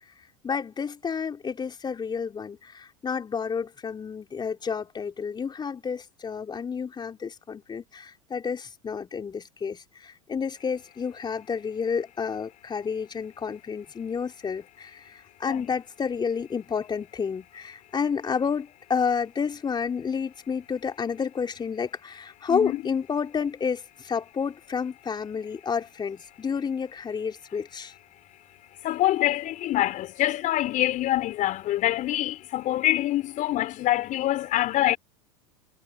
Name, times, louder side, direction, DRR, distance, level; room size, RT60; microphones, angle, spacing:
voice 1, 0.4-27.9, left 6 dB, 25° left, 4.0 m, -30 dB
voice 2, 22.5-22.8 28.8-35.0, left 14 dB, 45° left, 4.1 m, -25 dB
hypercardioid pair, 90°, 19 cm